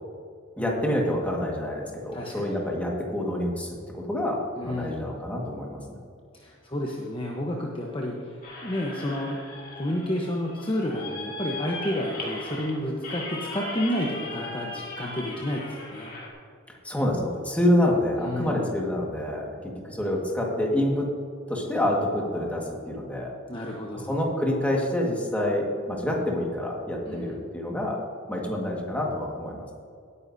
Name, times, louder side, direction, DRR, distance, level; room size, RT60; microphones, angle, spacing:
voice 1, 0.6-6.0 16.7-21.1 21.5-23.3 24.1-28.0 28.3-29.7, left 1 dB, 5° left, -2 dB, 1.7 m, -27 dB
voice 2, 2.1-2.6 4.6-5.1 6.3-9.4 9.7-16.1 18.2-18.7 23.5-24.1 27.1-27.4, left 1 dB, 25° left, -2 dB, 1.0 m, -31 dB
sound 1, 8.4-16.3, left 2 dB, 45° left, 2.2 m, -38 dB
17.5 x 9.6 x 2.7 m, 2.2 s
head